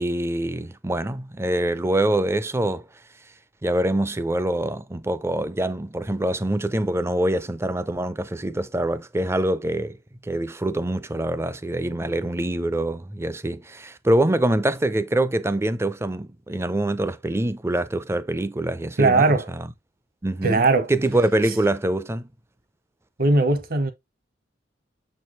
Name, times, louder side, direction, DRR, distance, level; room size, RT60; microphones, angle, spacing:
voice 1, 0.0-2.8 3.6-10.0 10.2-19.7 20.2-20.6 20.9-22.3, right 1 dB, 15° right, 0.4 m, -24 dB
voice 2, 19.0-19.5 20.4-20.9 23.2-23.9, right 3 dB, 55° right, 1.1 m, -19 dB
7.0 x 4.5 x 3.1 m
head